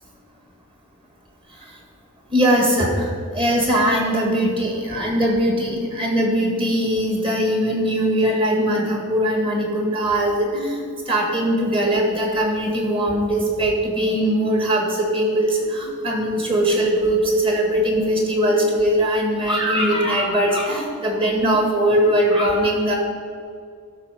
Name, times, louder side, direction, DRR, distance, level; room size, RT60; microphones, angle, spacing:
voice 1, 2.3-23.0, right 1 dB, 25° right, 0 dB, 1.8 m, -20 dB
12.0 x 5.8 x 5.0 m, 2.3 s
head